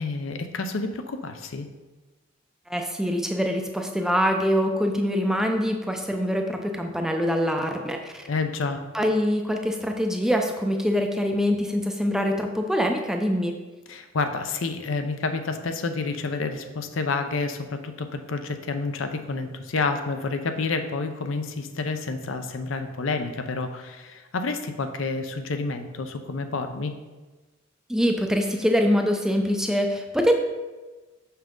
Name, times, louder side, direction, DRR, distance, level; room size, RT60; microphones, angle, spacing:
voice 1, 0.0-1.7 8.3-8.8 13.9-26.9, left 3 dB, 75° left, 7 dB, 0.6 m, -29 dB
voice 2, 2.7-8.2 8.9-13.6 27.9-30.3, equal, 5° right, 3 dB, 0.4 m, -24 dB
6.2 x 5.6 x 3.7 m, 1.2 s
head